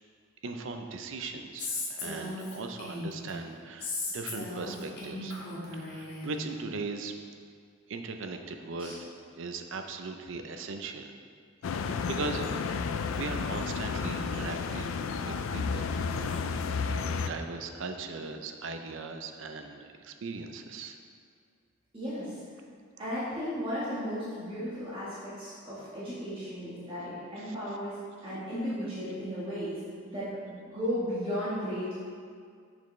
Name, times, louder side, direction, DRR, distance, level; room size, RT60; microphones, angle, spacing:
voice 1, 0.4-5.3 5.7-7.2 7.9-9.0 9.3-11.1 11.7-12.4 12.9-16.6 17.1-21.0 27.4-27.5, right 4 dB, 65° right, 6 dB, 0.5 m, -39 dB
Female speech woman speaking, 1.6-3.3 3.8-6.3, left 2 dB, 55° left, 1.4 m, -36 dB
sound 1, 11.6-17.3, left 5 dB, 75° left, 0.3 m, -32 dB
voice 2, 21.9-22.4 23.0-31.9, equal, 25° right, -11 dB, 1.3 m, -35 dB
6.6 x 6.0 x 3.1 m, 2.1 s
head